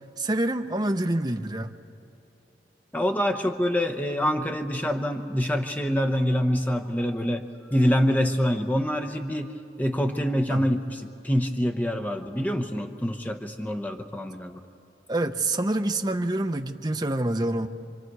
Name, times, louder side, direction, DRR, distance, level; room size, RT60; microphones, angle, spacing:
voice 1, 0.2-1.7 10.5-10.6 15.1-17.7, right 1 dB, 25° right, 6 dB, 0.7 m, -26 dB
voice 2, 2.9-7.4 7.7-14.6, equal, 10° left, 5 dB, 0.9 m, -26 dB
27.0 x 24.0 x 4.7 m, 2.5 s
head